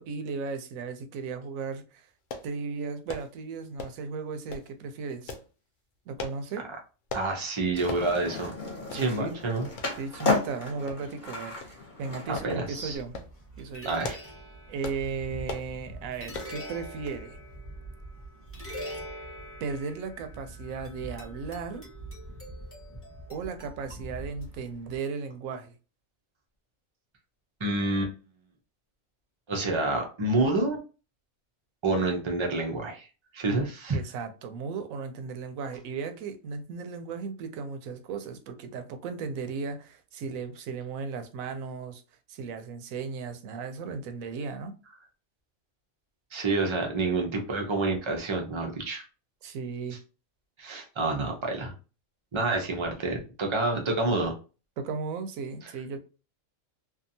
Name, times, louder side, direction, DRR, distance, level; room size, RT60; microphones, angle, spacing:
voice 1, 0.0-2.1 2.4-5.3 6.1-6.6 8.9-9.4 10.0-13.2 13.6-14.0 14.7-17.4 19.6-21.8 23.3-25.7 33.5-33.6 33.9-42.0 42.3-44.8 49.4-50.0 54.8-56.0, right 5 dB, 80° right, 1.0 m, -36 dB
sound 1, 2.3-2.5 3.1-3.3 3.8-4.1 4.5-4.7 5.3-5.5 6.2-6.4 7.1-7.3 7.9-8.1 8.5-8.6 8.9-9.1 9.8-9.9 10.9-11.3 11.6-11.8 12.4-12.5 13.0-13.3 13.8-14.3 14.8-15.0 15.5-15.7 16.3-16.6 17.1-17.2 17.5-17.6, left 3 dB, 85° left, 0.4 m, -38 dB
voice 2, 7.1-8.5 9.0-9.7 12.3-13.0 13.8-14.2 27.6-28.1 29.5-30.8 31.8-33.1 33.3-34.0 46.3-49.0 50.6-51.7 52.3-54.3, right 2 dB, 45° right, 0.3 m, -28 dB
Skateboard, 7.7-13.0, left 3 dB, 40° left, 0.9 m, -33 dB
sound 2, 12.9-25.0, equal, 10° left, 0.7 m, -43 dB
2.8 x 2.3 x 2.6 m
omnidirectional pair, 1.4 m